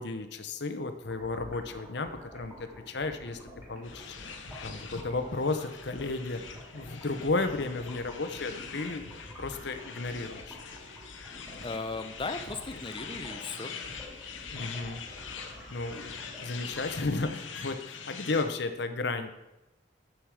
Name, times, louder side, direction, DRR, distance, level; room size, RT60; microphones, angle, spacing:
voice 1, 0.0-3.4 3.7-4.1 4.6-6.4 6.7-9.1 9.4-10.7 14.5-15.0 15.7-19.3, left 3 dB, 60° left, 8 dB, 0.9 m, -33 dB
sound 1, 1.1-17.5, equal, 10° right, 3.0 m, -48 dB
sound 2, 3.8-18.5, left 6 dB, 85° left, 1.1 m, -44 dB
voice 2, 11.6-13.7, left 3 dB, 25° left, 9 dB, 0.7 m, -37 dB
9.2 x 7.8 x 4.9 m, 0.97 s
head